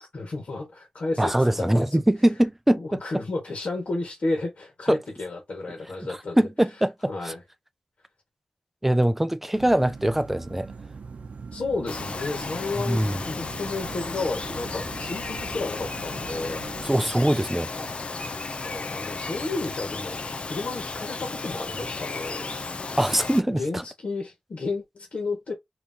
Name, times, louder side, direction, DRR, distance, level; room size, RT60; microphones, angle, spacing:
voice 1, 0.0-2.0 2.8-6.4 7.1-7.4 11.5-16.6 17.7-17.9 18.6-22.5 23.5-25.5, left 3 dB, 75° left, 1.4 m, -32 dB
voice 2, 1.2-3.0 4.9-5.0 6.1-7.3 8.8-10.7 12.8-13.2 16.8-17.7 23.0-23.8, right 1 dB, 10° right, 0.4 m, -23 dB
sound 1, 9.5-16.9, right 5 dB, 85° right, 0.5 m, -42 dB
Bird vocalization bird call bird song, 11.9-23.4, left 3 dB, 55° left, 0.5 m, -34 dB
2.9 x 2.7 x 3.6 m
wide cardioid pair, 85°, 2 cm